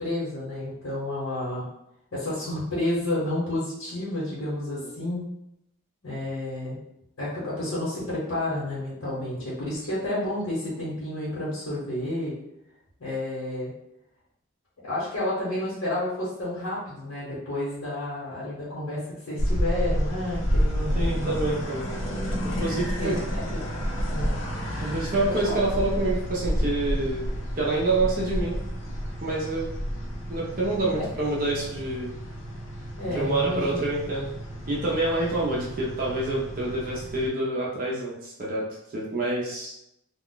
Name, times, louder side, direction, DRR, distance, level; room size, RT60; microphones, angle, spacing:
voice 1, 0.0-1.6 2.1-5.2 6.0-6.8 7.2-12.3 13.0-13.7 14.8-21.6 22.7-23.4 24.1-24.3 25.3-25.5 30.9-31.1 33.0-33.9, left 1 dB, 85° left, -9 dB, 1.1 m, -30 dB
sound 1, 19.4-37.3, equal, 65° left, 0.6 m, -30 dB
voice 2, 20.9-21.9 22.6-23.1 24.8-27.3 27.6-28.6 29.2-29.7 30.3-32.1 33.1-34.3 34.7-38.6 38.9-39.7, right 2 dB, 40° right, -5 dB, 0.6 m, -27 dB
2.3 x 2.2 x 3.7 m, 0.82 s
head